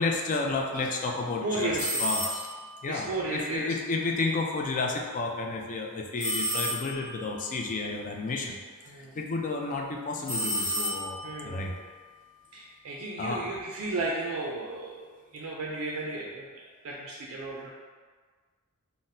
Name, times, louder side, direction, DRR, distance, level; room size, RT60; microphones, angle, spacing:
voice 1, 0.0-2.5 2.8-8.6 8.9-11.7 13.2-13.4, left 3 dB, 35° left, 1 dB, 0.3 m, -31 dB
voice 2, 1.4-2.0 2.9-3.7 8.9-9.1 11.2-11.6 12.5-15.1 15.3-17.7, right 2 dB, 65° right, -3 dB, 0.4 m, -34 dB
sound 1, 1.7-2.7 6.2-7.2 10.2-11.4, equal, 20° left, 1.4 m, -31 dB
4.0 x 2.1 x 2.6 m, 1.5 s
head